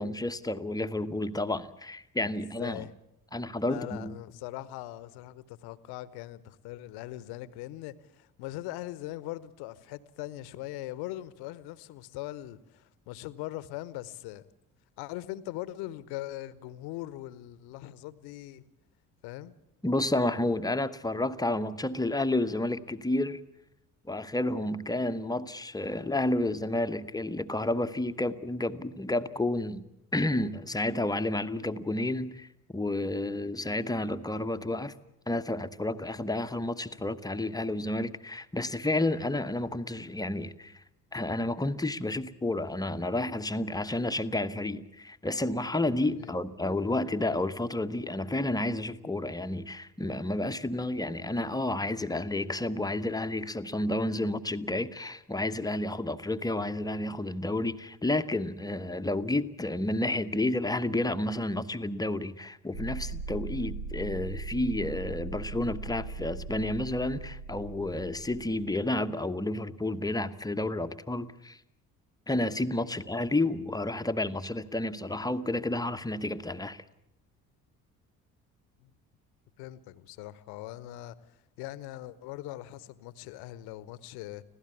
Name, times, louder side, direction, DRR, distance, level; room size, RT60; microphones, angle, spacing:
voice 1, 0.0-2.8 3.3-4.1 19.8-23.4 24.1-29.8 30.1-34.9 35.3-40.8 41.1-71.6 72.3-76.8, left 2 dB, 10° left, 1.0 m, -31 dB
voice 2, 2.6-2.9 3.7-14.4 15.0-18.6 19.2-19.5 46.2-46.4 72.9-73.0 78.8-78.9 79.6-84.4, left 15 dB, 60° left, 1.1 m, -41 dB
sound 1, 62.7-68.9, right 3 dB, 85° right, 2.6 m, -39 dB
25.5 x 16.5 x 8.4 m
figure-of-eight pair, 50°, 44 cm